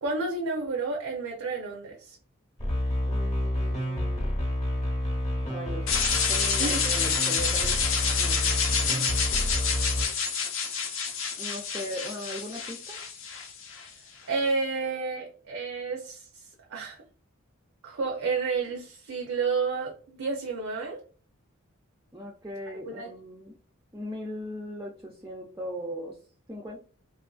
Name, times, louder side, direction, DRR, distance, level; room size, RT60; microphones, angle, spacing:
voice 1, 0.0-2.2 6.6-6.9 14.3-16.3 16.7-17.0 17.8-21.0 22.8-23.1, right 4 dB, 80° right, 0.5 m, -30 dB
sound 1, 2.6-10.1, left 1 dB, 35° left, 0.7 m, -29 dB
voice 2, 3.1-4.3 5.4-6.0 6.3-7.8 8.2-9.3 11.4-13.0 22.1-23.6 23.9-26.2 26.5-26.8, equal, 10° right, 0.3 m, -39 dB
sound 2, 5.9-13.9, left 6 dB, 65° left, 0.5 m, -28 dB
2.9 x 2.4 x 2.3 m
head